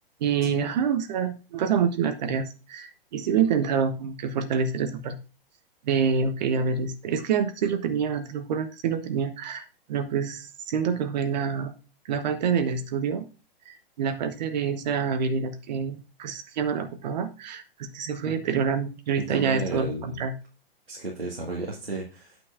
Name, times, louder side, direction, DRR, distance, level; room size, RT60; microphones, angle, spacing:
voice 1, 0.2-5.2 5.8-11.7 12.0-13.3 13.7-20.3, right 6 dB, 45° right, 10 dB, 1.1 m, -27 dB
voice 2, 19.2-20.2 20.9-22.4, right 2 dB, 85° right, -2 dB, 1.9 m, -33 dB
9.0 x 7.6 x 2.5 m, 0.33 s
figure-of-eight pair, 110°, 29 cm